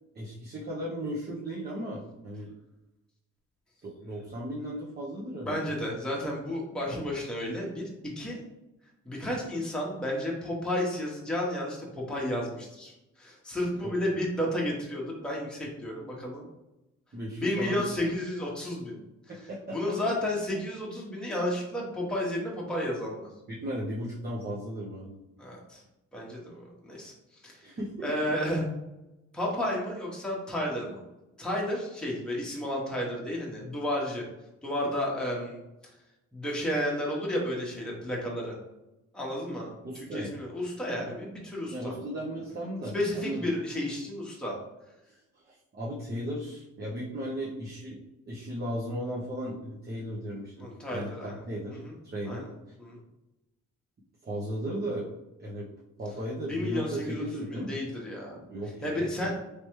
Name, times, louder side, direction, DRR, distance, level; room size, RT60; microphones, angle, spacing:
voice 1, 0.1-2.5 3.8-5.8 14.0-14.2 17.1-17.8 19.3-19.8 23.5-25.2 27.6-28.1 39.8-40.4 41.7-43.5 45.3-48.0 48.3-52.5 54.2-55.1 55.4-55.7 56.0-57.8 58.3-59.3, equal, 35° right, -6 dB, 0.8 m, -36 dB
voice 2, 5.4-8.4 9.0-16.5 17.4-19.0 19.7-23.3 25.4-25.8 26.1-27.7 28.0-28.7 29.3-31.0 31.4-34.3 34.6-35.6 36.3-38.6 39.1-41.9 42.9-44.6 50.6-51.4 51.7-51.9 52.2-52.5 52.8-53.0 56.5-58.4 58.8-59.3, left 1 dB, 5° left, -3 dB, 1.0 m, -32 dB
3.3 x 3.0 x 3.1 m, 0.96 s
cardioid pair, 90°, 30 cm